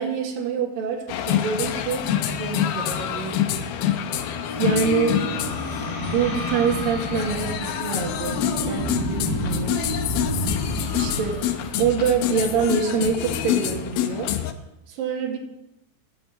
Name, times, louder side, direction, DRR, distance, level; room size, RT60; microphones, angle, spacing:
voice 1, 0.0-3.4 4.6-5.2 6.1-9.9 10.9-11.4 11.8-14.3 14.9-15.4, right 6 dB, 55° right, 1 dB, 3.6 m, -26 dB
sound 1, 1.1-14.5, left 10 dB, 75° left, 2.5 m, -27 dB
sound 2, 3.7-12.9, left 1 dB, 60° left, 6.0 m, -30 dB
13.5 x 11.0 x 8.0 m, 0.91 s
omnidirectional pair, 5.1 m